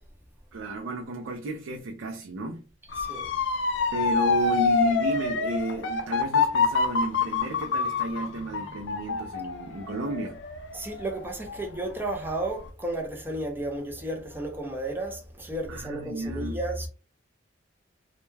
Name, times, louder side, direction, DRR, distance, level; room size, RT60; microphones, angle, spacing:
voice 1, 0.5-2.7 3.9-10.4 15.7-16.6, right 1 dB, 85° right, 0.4 m, -32 dB
Motor vehicle (road) / Siren, 2.9-11.8 12.2-12.7, left 4 dB, 60° left, 0.3 m, -27 dB
voice 2, 3.0-3.5 10.7-16.9, right 1 dB, 10° right, 0.5 m, -33 dB
2.2 x 2.1 x 3.1 m
head